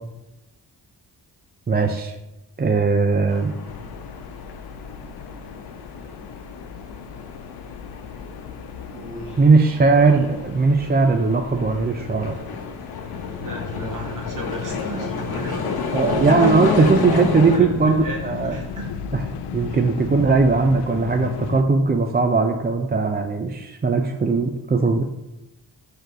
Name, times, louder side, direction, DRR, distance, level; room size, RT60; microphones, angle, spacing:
voice 1, 1.7-2.2 2.6-3.5 9.4-12.4 15.9-18.6 19.1-19.2 19.5-25.0, right 4 dB, 25° right, 5 dB, 0.5 m, -19 dB
sound 1, 3.3-17.6, left 3 dB, 60° left, 1.0 m, -31 dB
sound 2, 3.7-21.6, left 8 dB, 75° left, 0.5 m, -35 dB
voice 2, 8.9-9.4 13.4-16.2 17.5-17.7 18.0-18.9 19.7-19.8, right 2 dB, 50° right, -1 dB, 2.0 m, -35 dB
4.8 x 4.4 x 5.2 m, 0.94 s
supercardioid pair, 50°, 42 cm